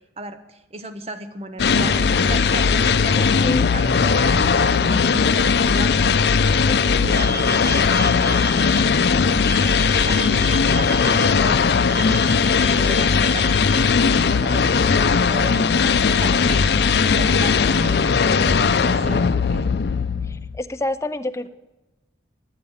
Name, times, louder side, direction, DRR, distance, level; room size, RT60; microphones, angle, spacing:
voice 1, 0.2-6.2 6.8-8.5 9.1-19.6, right 1 dB, 35° right, 10 dB, 0.8 m, -35 dB
sound 1, 1.6-20.6, left 5 dB, 70° left, 0.5 m, -18 dB
voice 2, 3.2-3.7 6.6-7.1 20.2-21.5, left 1 dB, 15° left, 10 dB, 0.4 m, -28 dB
sound 2, 7.1-8.8 9.4-11.2 11.9-13.7, right 3 dB, 70° right, 2.0 m, -32 dB
10.5 x 9.7 x 7.0 m, 1.0 s
head